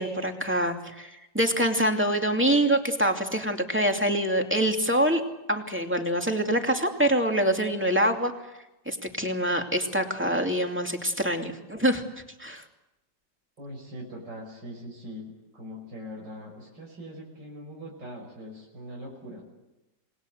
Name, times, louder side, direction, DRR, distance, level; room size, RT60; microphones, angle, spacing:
voice 1, 0.0-5.2 5.5-8.3 8.9-12.0 12.4-12.6, right 1 dB, 5° right, 3 dB, 2.5 m, -25 dB
voice 2, 13.6-19.4, equal, 70° right, -2 dB, 6.3 m, -41 dB
28.0 x 20.5 x 8.0 m, 0.94 s
omnidirectional pair, 2.0 m